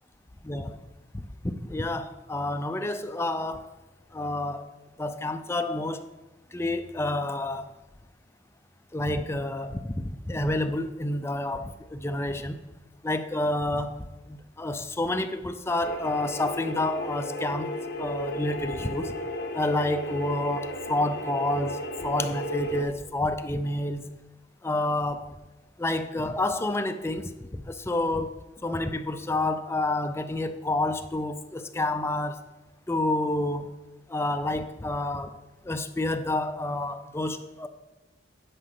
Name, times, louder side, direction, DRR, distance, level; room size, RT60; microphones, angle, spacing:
voice 1, 0.4-0.8 1.1-3.7 4.1-4.7 5.0-6.0 6.5-7.7 8.9-12.7 13.0-17.7 18.0-19.1 19.5-24.1 24.6-25.3 25.8-28.3 28.6-32.4 32.9-33.7 34.1-35.4 35.6-37.7, left 2 dB, 15° left, 8 dB, 0.4 m, -29 dB
sound 1, 15.8-22.8, equal, 60° left, 1.1 m, -34 dB
9.9 x 5.0 x 5.9 m, 1.1 s
head